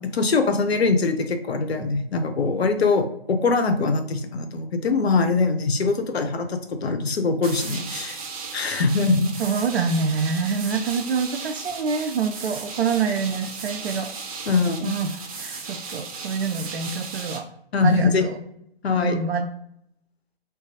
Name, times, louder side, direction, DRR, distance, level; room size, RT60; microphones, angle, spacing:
voice 1, 0.1-8.2 8.5-9.3 14.5-14.9 17.7-18.3 18.8-19.2, left 4 dB, 85° left, 8 dB, 0.6 m, -22 dB
sound 1, 7.4-17.4, right 4 dB, 35° right, 0.7 m, -36 dB
voice 2, 9.4-14.1 14.8-17.5 17.8-18.4 19.0-19.5, right 5 dB, 90° right, 5 dB, 0.5 m, -26 dB
3.9 x 2.3 x 2.6 m, 0.74 s
hypercardioid pair, 135°, 31 cm